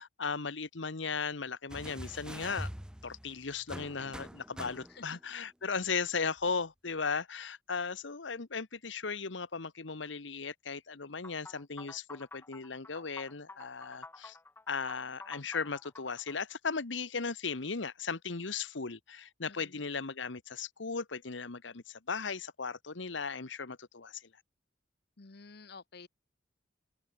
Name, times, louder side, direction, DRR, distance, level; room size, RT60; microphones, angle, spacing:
voice 1, 0.0-2.7 3.0-14.4 14.7-24.3, left 5 dB, 80° left, 1.2 m, -37 dB
sound 1, 1.7-5.2 6.4-6.5, equal, 5° right, 1.2 m, -44 dB
voice 2, 4.9-5.2 19.4-19.8 25.2-26.1, left 4 dB, 60° left, 1.0 m, -52 dB
sound 2, 11.2-16.4, left 3 dB, 10° left, 0.5 m, -50 dB
head